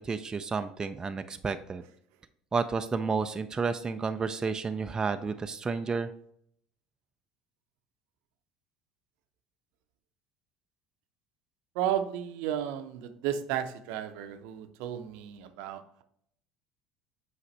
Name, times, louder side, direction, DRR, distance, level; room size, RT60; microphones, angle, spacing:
voice 1, 0.0-1.8 2.5-6.1, right 4 dB, 20° right, 9 dB, 0.4 m, -31 dB
voice 2, 11.8-16.0, right 10 dB, 60° right, 9 dB, 0.7 m, -33 dB
8.2 x 4.9 x 3.2 m, 0.68 s
figure-of-eight pair, 65°, 3 cm